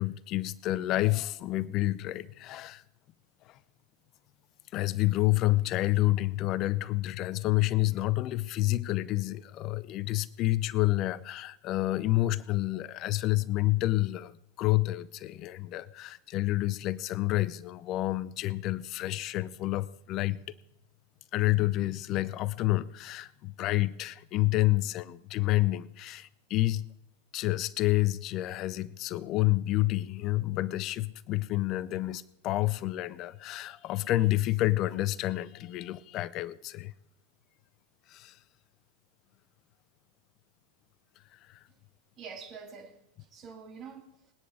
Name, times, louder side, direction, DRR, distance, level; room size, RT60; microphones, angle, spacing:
voice 1, 0.0-2.8 4.7-20.5 21.3-26.9 27.3-36.9 38.1-38.3, left 17 dB, 35° left, 0.6 m, -29 dB
voice 2, 42.2-44.3, right 5 dB, 30° right, 2.1 m, -47 dB
20.0 x 9.9 x 5.0 m
figure-of-eight pair, 90°, 0 cm